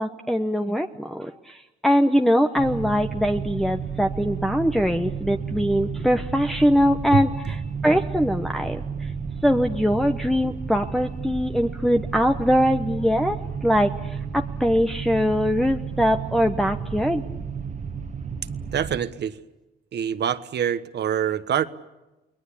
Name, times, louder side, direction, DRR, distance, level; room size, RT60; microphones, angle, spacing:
voice 1, 0.0-7.3 7.8-9.1 9.4-17.2, equal, ahead, 3 dB, 1.1 m, -22 dB
sound 1, 2.6-19.0, right 6 dB, 40° right, 1.6 m, -32 dB
voice 2, 18.7-19.4 19.9-21.6, right 9 dB, 60° right, 12 dB, 1.3 m, -25 dB
29.5 x 21.0 x 8.5 m, 1.0 s
cardioid pair, 90°, 20 cm